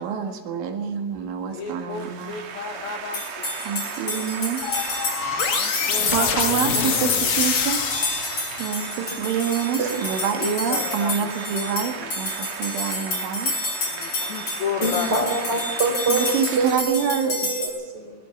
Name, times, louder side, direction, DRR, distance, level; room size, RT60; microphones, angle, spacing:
voice 1, 0.0-2.4 3.7-4.7 6.1-7.8 8.6-13.5 16.1-17.4, right 7 dB, 75° right, 5 dB, 4.2 m, -27 dB
voice 2, 1.5-3.5 5.6-7.3 9.3-9.4 10.4-12.6 13.8-15.3, left 6 dB, 70° left, 5 dB, 2.4 m, -33 dB
sound 1, 1.6-16.8, right 6 dB, 55° right, 2.2 m, -36 dB
sound 2, 3.1-17.7, left 2 dB, 35° left, 8.9 m, -29 dB
sound 3, 4.6-8.9, left 7 dB, 55° left, 2.9 m, -26 dB
voice 3, 14.8-18.1, right 3 dB, 25° right, 4 dB, 3.9 m, -25 dB
21.5 x 20.0 x 7.2 m, 1.4 s
omnidirectional pair, 5.7 m